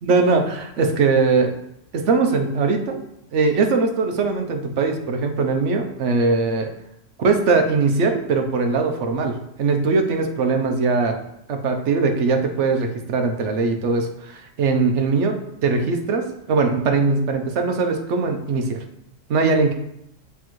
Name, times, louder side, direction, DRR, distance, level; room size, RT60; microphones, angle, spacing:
voice 1, 0.0-1.5 1.9-3.0 3.3-6.7 7.2-11.2 11.5-15.4 15.6-18.8 19.3-19.7, right 4 dB, 70° right, 4 dB, 1.1 m, -20 dB
9.4 x 3.4 x 3.1 m, 0.79 s
omnidirectional pair, 1.3 m